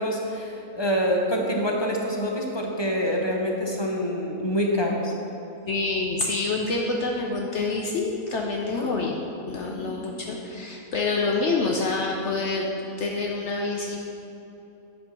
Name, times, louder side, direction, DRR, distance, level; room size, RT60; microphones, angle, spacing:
voice 1, 0.0-5.1 8.7-8.9 9.6-9.9, equal, 30° left, 0 dB, 0.5 m, -26 dB
voice 2, 5.7-9.2 9.5-12.7 13.0-14.0, left 3 dB, 65° left, 0 dB, 0.8 m, -27 dB
8.6 x 4.3 x 5.7 m, 2.9 s
omnidirectional pair, 1.5 m